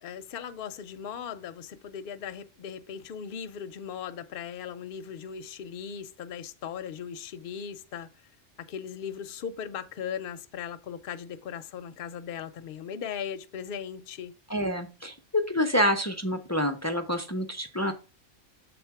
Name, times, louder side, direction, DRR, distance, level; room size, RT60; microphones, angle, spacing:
voice 1, 0.0-8.1 8.6-14.3, left 8 dB, 55° left, 0.7 m, -38 dB
voice 2, 14.5-15.2 15.5-17.9, equal, 25° left, 0.3 m, -27 dB
7.0 x 3.6 x 4.6 m
omnidirectional pair, 1.3 m